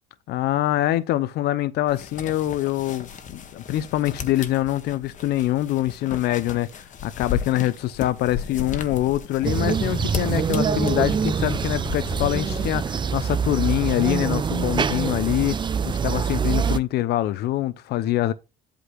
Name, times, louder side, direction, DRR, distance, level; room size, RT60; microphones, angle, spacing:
voice 1, 0.3-15.6 15.8-18.3, left 14 dB, 75° left, 0.6 m, -24 dB
sound 1, 1.9-12.7, left 7 dB, 50° left, 1.2 m, -35 dB
sound 2, 9.4-16.8, right 6 dB, 25° right, 0.5 m, -24 dB
8.3 x 3.8 x 6.1 m
cardioid pair, 110°, 17 cm